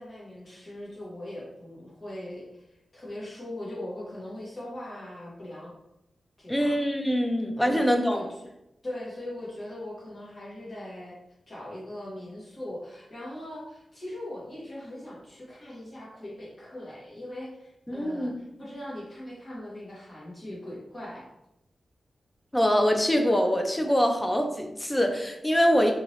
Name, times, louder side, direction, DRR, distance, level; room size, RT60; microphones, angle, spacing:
voice 1, 0.0-5.7 6.4-6.8 7.6-8.3 8.8-11.2 11.5-18.3 18.6-21.2, left 1 dB, 35° left, -7 dB, 1.2 m, -40 dB
voice 2, 6.5-8.2 17.9-18.3 22.5-25.9, equal, 10° left, 4 dB, 0.3 m, -24 dB
3.0 x 2.7 x 2.8 m, 0.85 s
wide cardioid pair, 175°, 0 cm